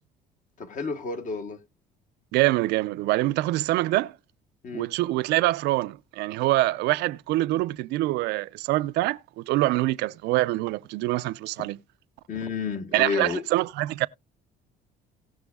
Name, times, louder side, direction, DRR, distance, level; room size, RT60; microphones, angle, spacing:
voice 1, 0.6-1.6 4.6-4.9 11.6-11.7 12.3-13.4, left 5 dB, 50° left, 1.2 m, -31 dB
voice 2, 2.3-4.1 4.7-11.8 12.9-14.1, right 17 dB, 85° right, 0.5 m, -25 dB
18.0 x 6.1 x 2.3 m
cardioid pair, 110°, 17 cm